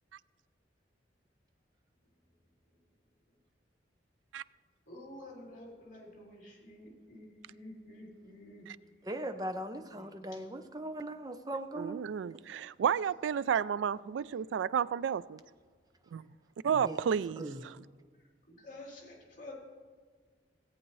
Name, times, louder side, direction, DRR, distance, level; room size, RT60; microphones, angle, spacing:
voice 1, 4.9-8.7 9.9-10.4 18.1-19.5, left 1 dB, 45° left, 3.4 m, -50 dB
voice 2, 9.0-12.1 16.8-17.0 17.4-17.8, right 1 dB, 20° right, 0.6 m, -39 dB
voice 3, 11.8-15.4 16.1-16.3 16.6-17.4, right 7 dB, 85° right, 0.3 m, -31 dB
17.0 x 8.6 x 3.1 m
head